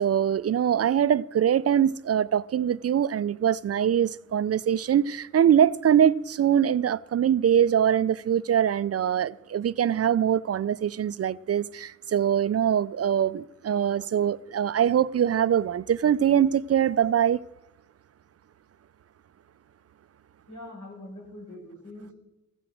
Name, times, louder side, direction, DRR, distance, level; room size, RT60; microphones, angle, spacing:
voice 1, 0.0-17.4, right 9 dB, 50° right, 0.4 m, -23 dB
voice 2, 20.5-22.1, left 1 dB, 65° left, 5.0 m, -43 dB
14.5 x 9.9 x 6.4 m
cardioid pair, 75°, 32 cm